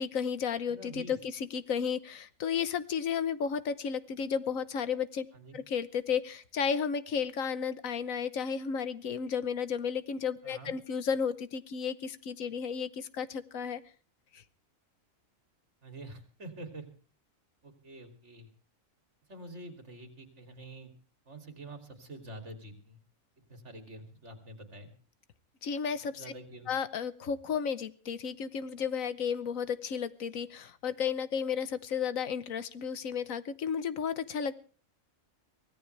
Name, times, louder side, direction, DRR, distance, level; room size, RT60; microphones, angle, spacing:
voice 1, 0.0-5.3 5.5-13.8 14.3-14.4 25.6-26.2 26.7-34.5, left 7 dB, 85° left, 14 dB, 1.4 m, -33 dB
voice 2, 0.7-1.2 5.3-5.6 10.4-10.7 15.8-16.9 17.6-18.5 19.3-20.9 21.2-23.0 23.4-24.9 26.1-26.7, right 1 dB, 60° right, 6 dB, 3.2 m, -47 dB
24.0 x 17.0 x 3.3 m, 0.39 s
omnidirectional pair, 1.4 m